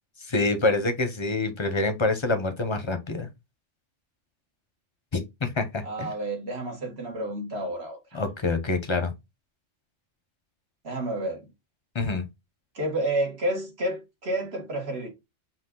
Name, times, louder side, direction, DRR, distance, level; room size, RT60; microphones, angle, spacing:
voice 1, 0.3-3.3 5.1-6.1 8.1-9.1 11.9-12.3, left 3 dB, 30° left, 0.7 m, -26 dB
voice 2, 5.8-8.2 10.8-11.5 12.8-15.1, right 1 dB, 55° right, 1.9 m, -30 dB
5.7 x 2.4 x 3.7 m
omnidirectional pair, 1.3 m